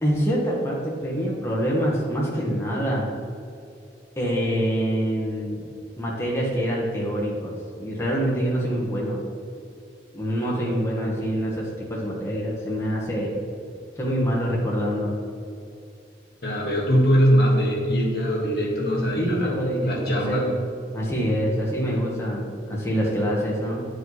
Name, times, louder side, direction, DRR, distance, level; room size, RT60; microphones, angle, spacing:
voice 1, 0.0-3.1 4.2-5.7 6.0-9.2 10.1-13.3 14.0-15.1 19.1-20.6 20.9-23.8, equal, 15° left, -5 dB, 1.3 m, -25 dB
voice 2, 16.4-19.5 19.8-20.5, equal, 60° left, -1 dB, 1.5 m, -21 dB
9.9 x 5.0 x 4.1 m, 2.5 s
head